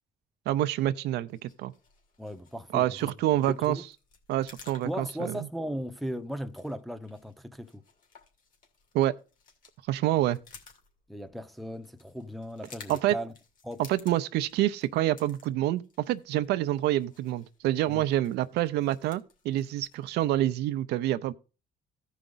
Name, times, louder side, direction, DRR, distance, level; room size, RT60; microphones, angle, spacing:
voice 1, 0.5-1.7 2.7-3.8 4.3-5.4 8.9-9.1 9.9-10.4 12.9-13.1 13.8-21.3, right 14 dB, 80° right, 0.6 m, -27 dB
sound 1, 1.1-20.3, left 5 dB, 55° left, 2.5 m, -56 dB
voice 2, 2.2-3.1 3.5-3.8 4.8-7.8 11.1-13.3 13.6-13.8 17.9-18.0, equal, ahead, 0.7 m, -37 dB
14.5 x 5.0 x 3.9 m
cardioid pair, 110°, 17 cm